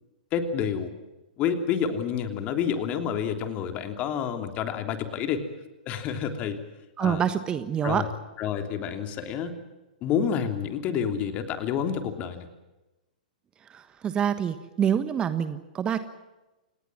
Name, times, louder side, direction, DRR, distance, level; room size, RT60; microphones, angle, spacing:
voice 1, 0.3-0.9 1.4-5.4 5.8-6.6 7.0-7.2 7.8-8.1 8.4-9.6 10.0-12.5, left 7 dB, 30° left, 7 dB, 3.1 m, -29 dB
voice 2, 7.0-8.0 13.7-16.0, right 8 dB, 20° right, 11 dB, 1.3 m, -26 dB
29.0 x 19.5 x 7.5 m, 1.0 s
figure-of-eight pair, 105°, 5 cm